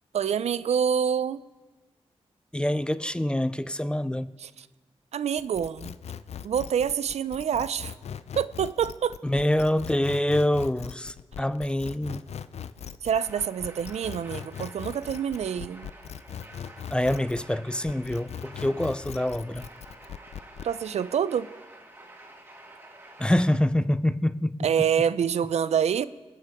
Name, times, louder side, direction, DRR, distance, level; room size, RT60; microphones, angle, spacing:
voice 1, 0.1-1.4 4.4-4.7 5.1-5.9 6.4-7.9 8.4-9.2 13.0-15.9 20.6-21.5 24.6-26.0, right 8 dB, 80° right, 0.4 m, -26 dB
voice 2, 2.5-4.3 9.2-12.2 16.9-19.6 23.2-24.6, left 1 dB, 10° left, 0.4 m, -26 dB
sound 1, 5.4-17.5 17.9-20.7, left 8 dB, 75° left, 0.5 m, -40 dB
sound 2, 13.1-23.6, right 1 dB, 20° right, 1.9 m, -49 dB
27.5 x 9.3 x 3.6 m
wide cardioid pair, 95°, 11 cm